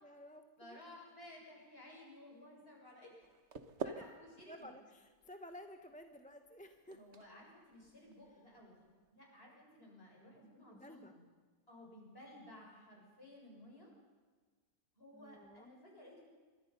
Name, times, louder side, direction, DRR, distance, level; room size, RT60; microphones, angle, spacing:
voice 1, 0.0-0.8 4.0-4.1 4.5-7.0 10.7-11.1 15.1-15.7, equal, 5° left, 5 dB, 1.1 m, -54 dB
voice 2, 0.6-3.3 3.8-4.7 6.9-8.8 9.1-11.3 11.7-13.9 15.0-16.3, left 1 dB, 40° left, -2 dB, 7.5 m, -56 dB
sound 1, 3.2-9.1, right 4 dB, 50° right, 1.5 m, -50 dB
26.0 x 24.0 x 5.6 m, 1.4 s
omnidirectional pair, 1.6 m